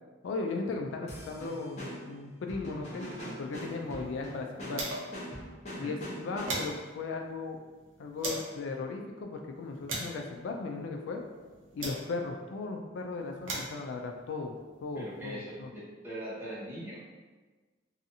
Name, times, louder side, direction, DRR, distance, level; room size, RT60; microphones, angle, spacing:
voice 1, 0.2-3.1 3.4-4.8 5.7-7.6 8.0-11.2 11.7-14.6 14.8-15.7, left 3 dB, 70° left, 2 dB, 0.3 m, -37 dB
sound 1, 1.1-6.8, equal, 40° left, 0.7 m, -43 dB
sound 2, 3.5-5.3 5.6-5.7 6.0-8.6 9.2-12.4 13.1-15.3, right 2 dB, 85° right, 0.6 m, -41 dB
voice 2, 14.9-17.0, equal, 10° right, -9 dB, 0.8 m, -41 dB
2.7 x 2.4 x 2.6 m, 1.3 s
head